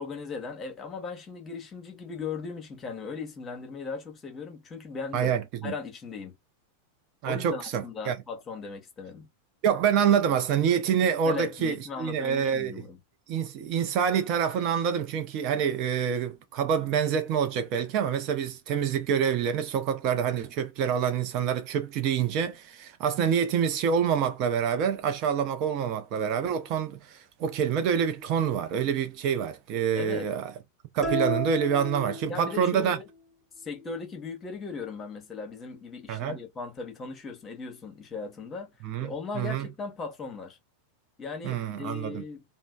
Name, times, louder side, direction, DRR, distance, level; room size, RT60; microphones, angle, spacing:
voice 1, 0.0-5.3 5.6-6.3 7.2-9.3 11.2-13.0 29.9-30.3 32.3-33.1 33.6-38.7 39.0-40.6 41.2-42.4, left 4 dB, 25° left, 0.9 m, -38 dB
voice 2, 5.1-5.7 7.2-8.2 9.6-12.7 13.3-30.5 30.9-33.0 36.1-36.4 38.8-39.7 41.4-42.2, right 7 dB, 40° right, 0.5 m, -27 dB
sound 1, 31.0-32.8, equal, 5° left, 1.1 m, -32 dB
3.1 x 2.0 x 2.5 m
figure-of-eight pair, 90°, 0 cm